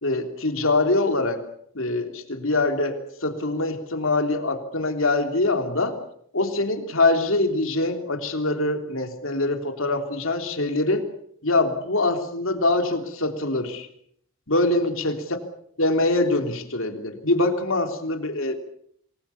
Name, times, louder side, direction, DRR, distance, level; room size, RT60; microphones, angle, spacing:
voice 1, 0.0-1.4 1.7-6.0 6.3-11.1 11.4-13.9 14.5-15.1 15.8-18.5, left 2 dB, 65° left, 6 dB, 3.4 m, -24 dB
27.0 x 21.0 x 7.2 m, 0.67 s
head